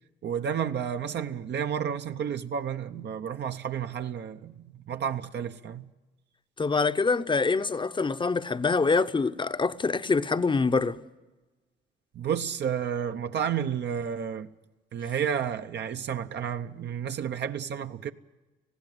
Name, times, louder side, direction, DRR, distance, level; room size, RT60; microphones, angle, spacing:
voice 1, 0.2-5.9 12.1-14.5 14.9-18.1, right 8 dB, 60° right, 0.8 m, -31 dB
voice 2, 6.6-11.0, left 4 dB, 25° left, 0.8 m, -25 dB
20.0 x 15.5 x 9.3 m
cardioid pair, 90°, 20 cm